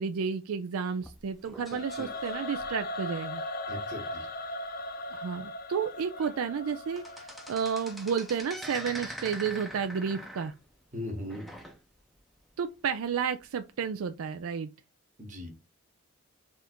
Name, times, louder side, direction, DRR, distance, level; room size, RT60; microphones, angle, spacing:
voice 1, 0.0-3.4 5.1-10.6 12.6-14.7, right 6 dB, 80° right, 0.4 m, -32 dB
sound 1, 1.0-3.2 3.7-3.9 4.2-4.3 4.9-5.0 5.6-5.7 6.0-6.4 6.7-12.2 12.5-12.6 13.4-13.5, equal, ahead, 0.5 m, -44 dB
Singing / Musical instrument, 1.7-8.8, left 1 dB, 45° left, 0.6 m, -39 dB
voice 2, 3.7-4.3 10.9-11.4 15.2-15.5, left 1 dB, 35° right, 1.2 m, -38 dB
3.6 x 2.5 x 4.3 m
head